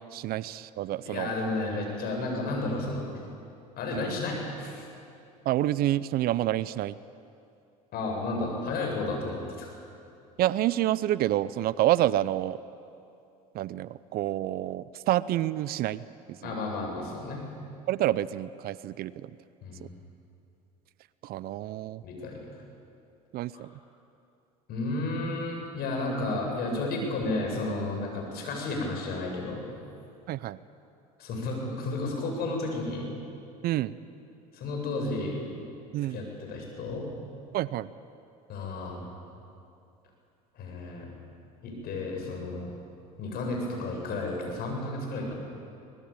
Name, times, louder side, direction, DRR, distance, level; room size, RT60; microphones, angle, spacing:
voice 1, 0.1-1.3 3.9-4.2 5.4-7.0 10.4-12.6 13.5-16.0 16.3-16.6 17.9-19.3 19.8-19.9 21.2-22.0 23.3-23.7 30.3-30.6 33.6-34.0 35.9-36.2 37.5-37.9, right 14 dB, 55° right, 18 dB, 0.7 m, -28 dB
voice 2, 1.0-3.1 3.8-4.8 7.9-9.7 16.4-17.4 19.6-19.8 22.0-22.5 23.5-23.6 24.7-29.7 31.2-33.2 34.5-35.4 36.1-37.0 38.5-39.1 40.6-41.1 41.6-42.7 43.2-45.4, left 2 dB, 55° left, 1 dB, 8.0 m, -32 dB
24.5 x 19.5 x 8.9 m, 2.6 s
hypercardioid pair, 80°, 19 cm